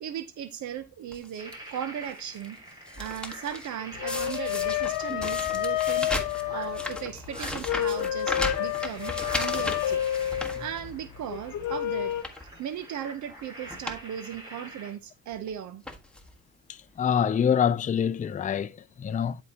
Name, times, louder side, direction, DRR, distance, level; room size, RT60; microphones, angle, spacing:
voice 1, 0.0-2.6 3.0-6.1 6.5-10.0 10.6-12.1 12.6-15.8, right 9 dB, 70° right, 0.7 m, -37 dB
sound 1, 1.1-1.5 2.1-2.5 2.7-3.7 4.1-11.2 11.6-11.7 12.1-12.5 13.3-13.4 13.7-14.0 14.3-14.4 15.3-15.5 15.8-16.3 17.1-17.2 17.4-17.5, left 1 dB, 5° left, 1.4 m, -36 dB
sound 2, 1.4-15.0, right 1 dB, 15° right, 5.4 m, -46 dB
sound 3, 3.9-12.2, left 12 dB, 90° left, 1.0 m, -30 dB
voice 2, 17.0-18.7 19.0-19.4, left 8 dB, 25° left, 0.4 m, -25 dB
10.5 x 4.7 x 2.8 m
cardioid pair, 90°, 30 cm